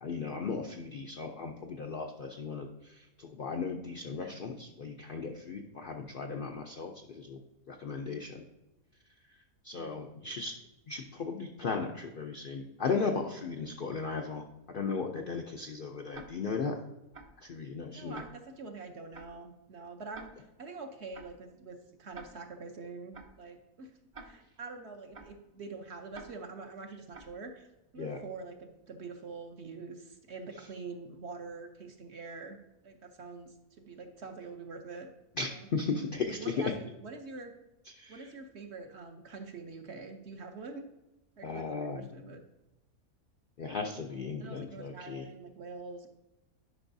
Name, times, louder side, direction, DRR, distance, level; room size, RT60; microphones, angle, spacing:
voice 1, 0.0-7.4 7.7-8.4 9.3-10.6 10.9-16.8 17.4-18.2 28.0-28.2 35.4-36.5 37.9-38.3 41.4-42.3 43.6-45.3, left 4 dB, 60° left, 3 dB, 0.5 m, -36 dB
voice 2, 9.8-10.1 17.9-20.3 20.6-27.7 27.9-32.6 32.8-35.1 35.4-35.7 36.2-37.5 38.1-40.9 41.4-42.4 44.4-46.1, right 4 dB, 55° right, 5 dB, 0.9 m, -45 dB
Tick-tock, 16.1-16.3 17.1-17.3 18.1-18.3 19.1-19.3 20.1-20.3 21.1-21.3 22.1-22.3 23.1-23.3 24.1-24.3 25.1-25.3 26.1-26.3 27.1-27.3, right 4 dB, 35° right, 0.5 m, -47 dB
11.0 x 5.3 x 2.6 m, 0.99 s
omnidirectional pair, 1.5 m